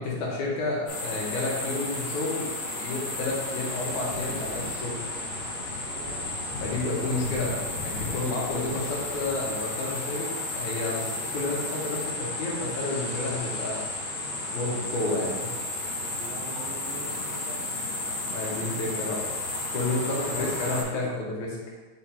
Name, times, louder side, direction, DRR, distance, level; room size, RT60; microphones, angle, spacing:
voice 1, 0.0-5.0 6.6-10.3 10.6-13.8 14.5-15.5 18.3-19.2 19.7-21.6, left 2 dB, 80° left, -3 dB, 2.6 m, -31 dB
sound 1, 0.9-20.8, left 2 dB, 65° left, 2.5 m, -33 dB
voice 2, 5.9-6.3 8.3-8.5 16.1-17.7 19.7-21.1, right 3 dB, 80° right, -6 dB, 1.2 m, -41 dB
6.4 x 3.5 x 4.4 m, 1.3 s
omnidirectional pair, 3.4 m